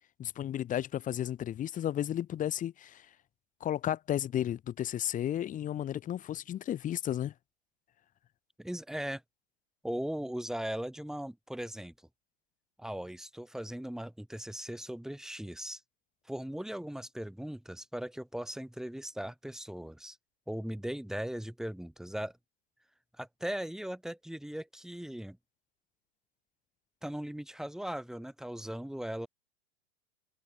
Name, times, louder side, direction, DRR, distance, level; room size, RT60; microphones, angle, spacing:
voice 1, 0.2-3.0 3.6-7.3, left 11 dB, 20° left, 1.1 m, -33 dB
voice 2, 8.6-9.2 9.8-11.9 12.8-15.8 16.3-20.2 20.5-22.3 23.2-25.4 27.0-29.3, right 1 dB, ahead, 6.9 m, -38 dB
figure-of-eight pair, 95°, 35 cm